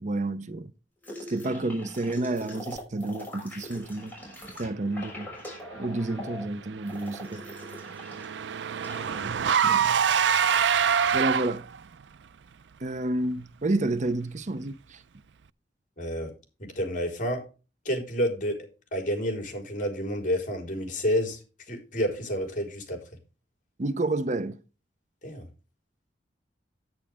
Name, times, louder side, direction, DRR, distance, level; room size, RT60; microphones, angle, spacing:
voice 1, 0.0-0.7 1.3-4.1 4.5-5.3 5.7-7.4 9.2-10.0 11.1-11.7 12.8-15.0 23.8-24.6, right 2 dB, 45° right, 0.7 m, -30 dB
sound 1, 1.0-8.3 8.6-9.2, left 1 dB, 10° left, 6.3 m, -42 dB
Car / Engine, 6.8-11.8, right 7 dB, 85° right, 0.5 m, -25 dB
voice 2, 16.0-16.3 16.6-17.4 17.8-21.4 21.7-23.0 25.2-25.4, equal, 45° left, 4.3 m, -29 dB
10.5 x 9.6 x 3.5 m
head